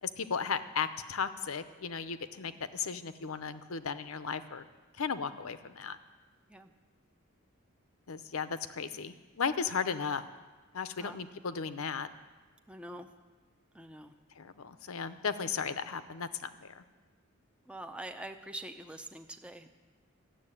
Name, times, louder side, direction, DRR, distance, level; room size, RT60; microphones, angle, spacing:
voice 1, 0.0-4.6 5.0-6.0 8.1-10.2 10.7-12.1 14.4-16.8, left 6 dB, 75° left, 12 dB, 0.7 m, -35 dB
voice 2, 12.7-13.1 13.7-14.1 17.7-19.7, right 1 dB, 5° right, 6 dB, 0.6 m, -45 dB
13.5 x 7.6 x 10.0 m, 1.3 s
head